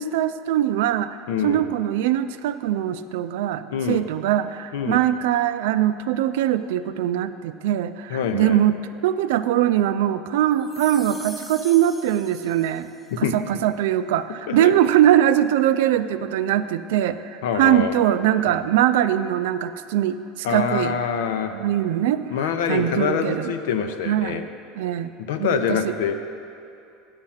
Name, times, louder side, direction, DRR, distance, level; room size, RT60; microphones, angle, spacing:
voice 1, 0.0-1.2 1.4-8.7 9.0-12.9 13.3-20.9 21.5-22.2 22.7-23.5 24.1-24.4 24.8-25.1 25.4-25.9, right 11 dB, 80° right, 12 dB, 0.4 m, -22 dB
voice 2, 1.3-1.7 3.7-4.0 4.7-5.0 8.1-8.6 13.2-13.6 14.5-14.7 17.4-18.0 18.5-18.6 20.4-21.5 22.3-24.5 25.2-26.1, left 7 dB, 85° left, 7 dB, 0.7 m, -25 dB
sound 1, 10.6-13.1, left 2 dB, 10° left, 0.6 m, -42 dB
8.7 x 7.4 x 5.7 m, 2.7 s
supercardioid pair, 135°, 0 cm